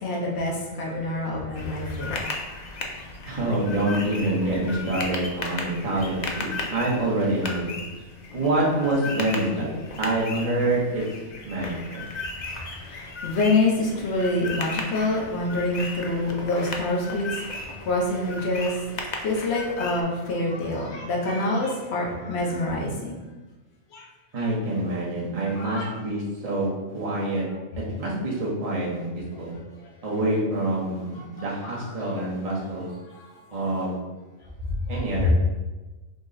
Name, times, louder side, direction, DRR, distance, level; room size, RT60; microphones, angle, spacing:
voice 1, 0.0-2.2 12.3-12.5 12.7-18.8 19.2-23.2 23.9-24.1 25.4-25.9 31.4-31.9 33.1-33.6 34.9-35.3, left 2 dB, 50° left, -3 dB, 1.1 m, -27 dB
sound 1, 1.5-20.0, left 3 dB, 85° left, 0.3 m, -36 dB
voice 2, 3.3-7.7 8.3-11.1 11.4-12.1 24.3-27.4 27.8-29.5 30.0-32.9 33.5-34.0 34.9-35.3, right 1 dB, 30° right, -5 dB, 0.9 m, -26 dB
4.0 x 2.9 x 3.8 m, 1.2 s
omnidirectional pair, 1.5 m